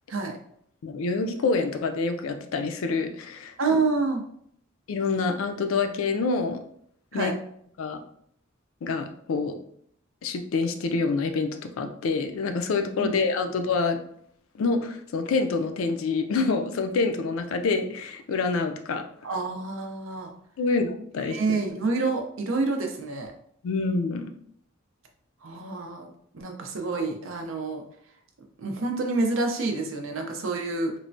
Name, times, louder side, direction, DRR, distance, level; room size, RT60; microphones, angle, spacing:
voice 1, 0.8-3.5 4.9-6.6 7.1-7.3 7.8-8.0 8.8-9.6 10.2-14.0 14.5-19.0 20.6-21.6 23.6-24.3, left 4 dB, 75° left, 6 dB, 0.4 m, -27 dB
voice 2, 3.6-4.2 7.1-7.3 13.0-13.1 19.2-20.3 21.3-23.3 25.4-27.8 28.6-30.9, right 3 dB, 65° right, 3 dB, 0.5 m, -28 dB
3.1 x 2.1 x 2.5 m, 0.67 s
head